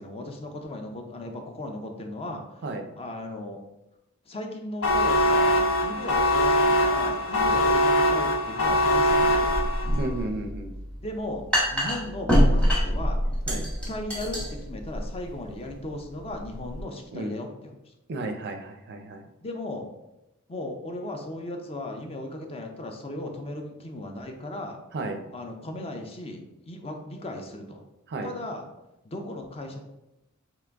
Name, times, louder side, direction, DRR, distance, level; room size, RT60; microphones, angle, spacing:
voice 1, 0.0-2.6 3.0-3.6 4.3-9.5 11.0-11.4 11.7-13.2 13.5-17.8 19.4-19.9 20.5-24.8 25.3-27.8 28.2-28.6 29.0-29.8, left 1 dB, 25° left, 4 dB, 0.5 m, -36 dB
sound 1, 4.8-10.1, left 1 dB, 60° left, 0.7 m, -22 dB
sound 2, 9.0-16.8, equal, 5° left, 1.0 m, -26 dB
voice 2, 10.0-10.7 13.5-13.6 17.1-17.4 18.1-19.3 24.9-25.2 28.1-28.3, right 2 dB, 50° right, 5 dB, 0.4 m, -33 dB
3.7 x 2.9 x 3.4 m, 0.92 s
head